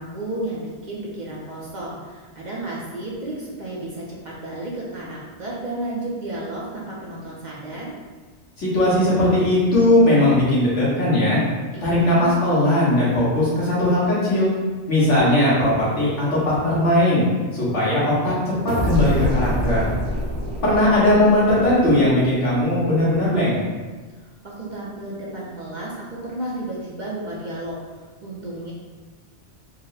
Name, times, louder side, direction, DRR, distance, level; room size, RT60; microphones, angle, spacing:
voice 1, 0.0-8.0 11.7-12.3 24.2-28.7, right 1 dB, 45° right, -5 dB, 0.7 m, -32 dB
voice 2, 8.6-11.4 11.8-14.5 14.9-17.2 17.5-18.3 18.6-19.9 20.6-23.6, left 1 dB, 80° left, -8 dB, 1.7 m, -18 dB
sound 1, 18.7-22.3, equal, 70° right, 1.2 m, -26 dB
4.0 x 2.1 x 3.9 m, 1.3 s
omnidirectional pair, 1.2 m